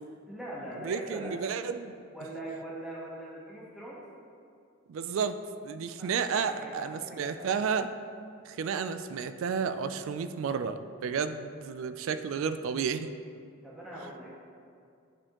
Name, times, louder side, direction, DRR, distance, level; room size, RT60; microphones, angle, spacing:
voice 1, 0.3-1.4 2.1-4.0 5.9-7.5 13.6-14.3, right 1 dB, ahead, -7 dB, 1.1 m, -42 dB
voice 2, 0.8-1.9 4.9-7.9 8.4-13.1, right 6 dB, 70° right, 11 dB, 0.3 m, -32 dB
8.9 x 4.3 x 2.9 m, 2.4 s
head